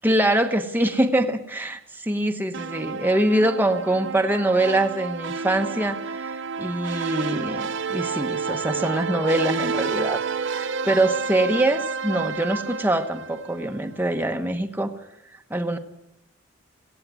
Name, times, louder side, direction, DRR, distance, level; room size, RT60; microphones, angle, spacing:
voice 1, 0.0-10.2 10.5-14.9 15.5-15.8, right 1 dB, 10° right, 5 dB, 1.2 m, -24 dB
sound 1, 2.5-13.8, right 5 dB, 65° right, 0.8 m, -30 dB
17.5 x 16.5 x 9.5 m, 0.82 s
head